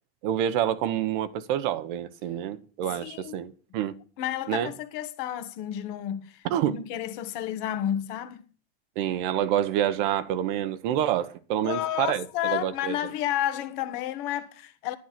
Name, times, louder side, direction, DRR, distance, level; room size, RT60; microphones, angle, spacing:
voice 1, 0.2-4.0 4.5-4.7 6.4-6.8 8.9-13.0, right 10 dB, 45° right, 1.1 m, -27 dB
voice 2, 3.0-3.3 4.2-8.4 11.6-15.0, left 11 dB, 45° left, 1.6 m, -31 dB
11.0 x 10.5 x 5.9 m
supercardioid pair, 160°, 35 cm